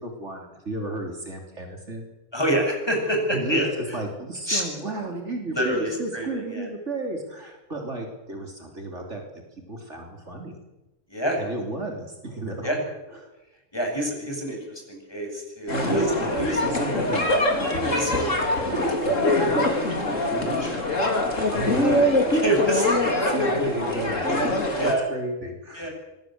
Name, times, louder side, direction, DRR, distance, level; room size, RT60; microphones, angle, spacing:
voice 1, 0.0-2.1 3.3-3.7 3.9-9.2 9.7-10.6 11.4-12.8 13.2-13.3 15.7-16.3 16.6-17.3 18.1-18.2 21.5-22.0 23.3-25.9, right 2 dB, 50° right, 2 dB, 3.8 m, -33 dB
voice 2, 2.3-4.0 4.5-4.6 5.5-6.7 11.1-11.4 12.6-12.8 13.7-16.1 16.4-16.6 16.9-17.0 17.8-18.7 20.4-20.9 22.3-23.3 24.8-25.0 25.7-25.9, equal, 15° left, 1 dB, 8.0 m, -27 dB
sound 1, 15.7-24.9, left 1 dB, 60° left, 3.9 m, -23 dB
26.0 x 21.5 x 8.0 m, 1.1 s
omnidirectional pair, 1.5 m